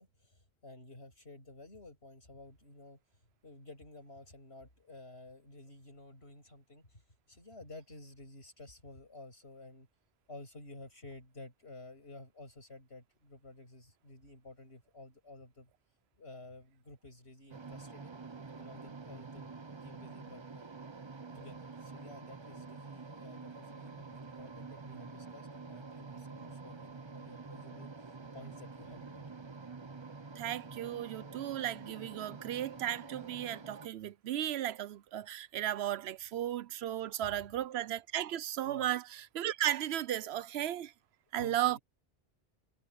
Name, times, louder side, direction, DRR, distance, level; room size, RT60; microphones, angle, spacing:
voice 1, 0.0-3.0 3.4-7.0 7.3-9.9 10.3-15.7 16.2-18.2 18.6-19.5 19.8-20.7 21.2-27.9 28.3-29.3 37.2-37.5 38.6-38.9 41.4-41.8, left 2 dB, 80° left, 7.5 m, -53 dB
sound 1, 17.5-33.9, right 4 dB, 30° right, 0.8 m, -47 dB
voice 2, 30.4-40.9 41.3-41.8, right 12 dB, 80° right, 0.9 m, -35 dB
omnidirectional pair, 1.1 m